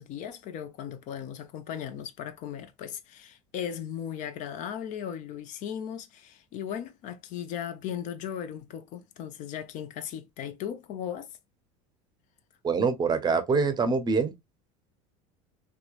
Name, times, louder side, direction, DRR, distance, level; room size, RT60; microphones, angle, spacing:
voice 1, 0.0-11.3, left 9 dB, 55° left, 0.6 m, -37 dB
voice 2, 12.6-14.4, right 4 dB, 25° right, 0.6 m, -25 dB
2.9 x 2.1 x 2.3 m
supercardioid pair, 95°, 16 cm